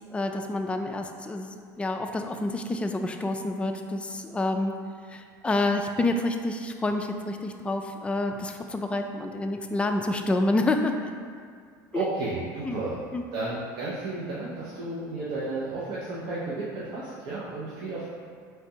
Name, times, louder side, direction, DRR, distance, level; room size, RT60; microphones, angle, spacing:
voice 1, 0.1-4.7 5.1-11.2 11.9-12.0 12.6-12.8 13.1-13.2, left 2 dB, 10° left, 4 dB, 0.3 m, -28 dB
voice 2, 11.9-13.0 13.3-18.1, right 2 dB, 55° right, -7 dB, 0.7 m, -32 dB
4.3 x 3.3 x 2.8 m, 2.1 s
supercardioid pair, 100°, 9 cm